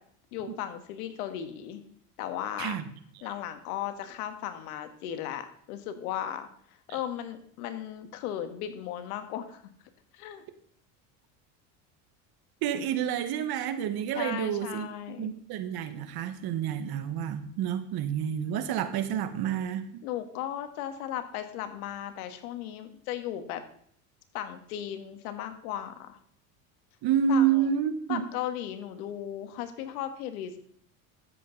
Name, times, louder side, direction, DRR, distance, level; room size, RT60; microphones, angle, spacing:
voice 1, 0.3-1.8 2.2-2.8 3.2-6.5 6.9-9.6 10.1-10.4 14.2-15.3 20.0-23.6 24.3-26.2 27.3-27.7 28.1-30.6, left 10 dB, 80° left, 9 dB, 1.6 m, -36 dB
voice 2, 12.6-14.9 15.2-20.0 27.0-28.2, right 8 dB, 55° right, 10 dB, 1.4 m, -29 dB
13.5 x 7.8 x 4.0 m, 0.62 s
supercardioid pair, 90°, 44 cm